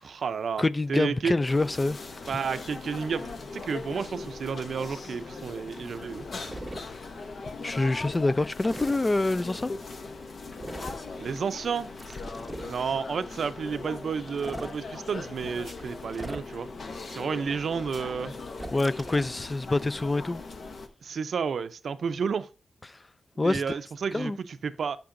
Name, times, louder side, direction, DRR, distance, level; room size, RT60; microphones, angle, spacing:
voice 1, 0.0-0.6 0.9-1.3 2.3-6.2 11.2-12.2 12.6-16.7 17.1-18.3 21.0-22.5 23.4-25.0, right 6 dB, 80° right, 0.5 m, -31 dB
voice 2, 0.6-2.0 7.6-9.7 18.7-20.4 22.9-23.0 23.4-23.6 24.1-24.4, left 2 dB, 25° left, 0.4 m, -26 dB
sound 1, 1.5-20.9, left 3 dB, 60° left, 0.9 m, -40 dB
sound 2, 6.5-6.8 8.6-9.0 10.6-11.0 12.0-12.8 14.3-14.7 16.1-16.7 18.5-19.4, right 1 dB, 10° right, 0.8 m, -39 dB
11.5 x 6.0 x 2.6 m
wide cardioid pair, 100°, 0 cm